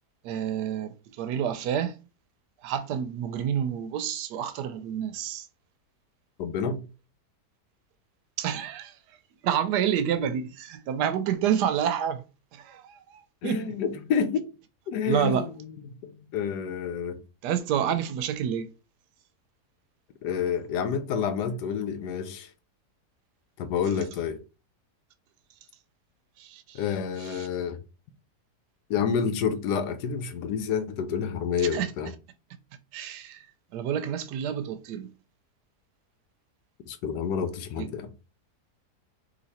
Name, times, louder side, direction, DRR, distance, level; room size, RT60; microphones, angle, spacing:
voice 1, 0.2-2.0 2.6-5.5 8.4-9.0 9.4-12.2 12.5-13.7 15.1-15.5 17.4-18.7 26.4-26.8 27.2-27.5 31.7-31.9 32.9-33.5 33.7-35.1 37.8-37.9, right 9 dB, 85° right, 1.2 m, -29 dB
voice 2, 6.4-6.8 13.4-14.5 14.9-15.5 16.0-17.2 20.2-22.5 23.6-24.4 26.7-27.8 28.9-32.1 36.9-38.1, left 7 dB, 80° left, 1.2 m, -29 dB
4.0 x 2.7 x 4.1 m
omnidirectional pair, 1.7 m